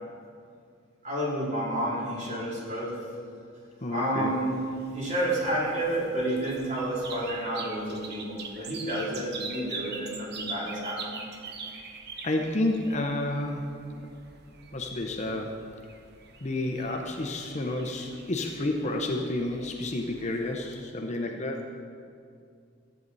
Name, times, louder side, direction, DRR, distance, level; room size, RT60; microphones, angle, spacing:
voice 1, 1.0-3.0 3.9-4.6 4.9-11.2, right 1 dB, 40° right, -6 dB, 3.2 m, -30 dB
voice 2, 3.8-4.3 12.2-13.8 14.7-15.6 16.4-21.7, left 2 dB, 35° left, 2 dB, 0.8 m, -30 dB
sound 1, 4.3-20.8, right 4 dB, 55° right, 1.0 m, -44 dB
14.5 x 8.9 x 4.1 m, 2.3 s
head